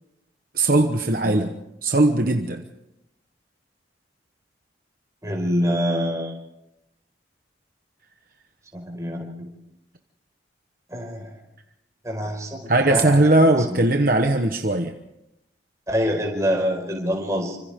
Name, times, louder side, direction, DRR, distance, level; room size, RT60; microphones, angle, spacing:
voice 1, 0.5-1.5 1.8-2.6 12.7-14.9, right 2 dB, 50° right, 5 dB, 1.1 m, -19 dB
voice 2, 5.2-6.4 8.7-9.5 10.9-11.4 12.0-13.2 13.7-13.8 15.9-17.6, equal, 15° right, 1 dB, 5.2 m, -25 dB
30.0 x 26.0 x 3.7 m, 0.85 s
head